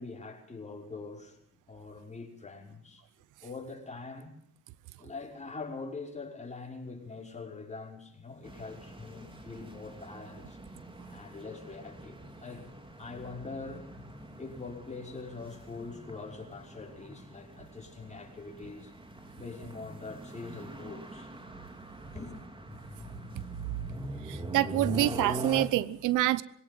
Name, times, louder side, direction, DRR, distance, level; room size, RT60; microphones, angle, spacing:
voice 1, 0.0-3.0 3.4-4.4 5.0-10.6 11.1-12.7 13.0-13.9 14.4-18.9 19.3-21.3 22.1-22.4, left 3 dB, 25° left, 0 dB, 5.7 m, -43 dB
sound 1, 8.4-25.6, equal, 15° right, 3.4 m, -43 dB
voice 2, 24.3-26.4, right 15 dB, 90° right, 18 dB, 0.9 m, -27 dB
21.5 x 17.5 x 7.8 m, 0.69 s
cardioid pair, 90°, 30 cm